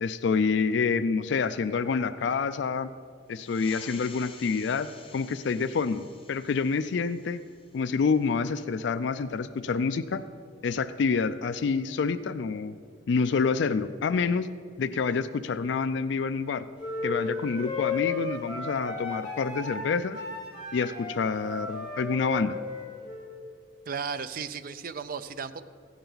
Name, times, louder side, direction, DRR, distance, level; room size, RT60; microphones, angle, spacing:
voice 1, 0.0-2.9 3.3-4.9 5.1-7.4 7.7-10.2 10.6-12.8 13.1-14.5 14.8-16.7 17.0-20.2 20.7-22.6, left 5 dB, 60° left, 13 dB, 0.3 m, -27 dB
sound 1, 3.3-8.4, left 5 dB, 25° left, 0.9 m, -50 dB
sound 2, 16.8-23.3, left 3 dB, 5° right, 3.6 m, -34 dB
voice 2, 23.9-25.6, right 6 dB, 45° right, 12 dB, 0.4 m, -35 dB
15.5 x 11.0 x 4.0 m, 2.2 s
head